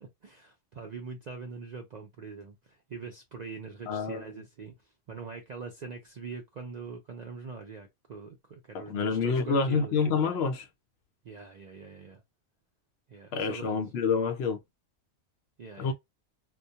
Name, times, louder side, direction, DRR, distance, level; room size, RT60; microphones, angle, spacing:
voice 1, 0.2-10.0 11.2-12.2 13.1-13.8 15.6-15.9, right 5 dB, 65° right, 0.4 m, -43 dB
voice 2, 3.9-4.2 8.7-10.7 13.3-14.6 15.8-15.9, left 5 dB, 65° left, 0.7 m, -28 dB
2.2 x 2.2 x 2.7 m
omnidirectional pair, 1.3 m